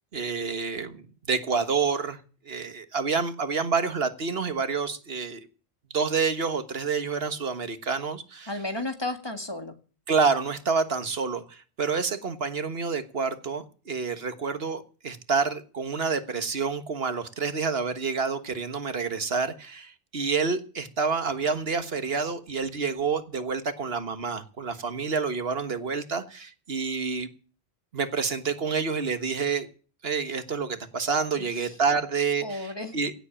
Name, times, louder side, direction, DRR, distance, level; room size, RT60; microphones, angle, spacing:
voice 1, 0.1-2.2 2.4-5.5 5.9-8.5 10.1-27.3 27.9-29.7 30.0-33.1, right 5 dB, 75° right, 1.6 m, -28 dB
voice 2, 8.5-9.7 31.4-31.8 32.4-33.0, left 2 dB, 25° left, 1.9 m, -33 dB
17.0 x 8.1 x 7.2 m
omnidirectional pair, 1.0 m